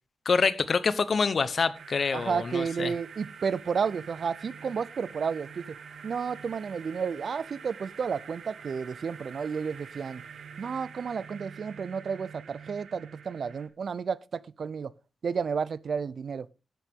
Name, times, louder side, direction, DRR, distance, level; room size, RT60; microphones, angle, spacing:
voice 1, 0.2-2.9, left 5 dB, 50° left, 0.9 m, -26 dB
sound 1, 1.7-13.7, right 6 dB, 80° right, 1.4 m, -46 dB
voice 2, 2.1-5.8 6.0-10.2 10.6-14.9 15.2-16.5, right 6 dB, 55° right, 0.5 m, -32 dB
12.5 x 9.0 x 3.6 m
wide cardioid pair, 120°, 0 cm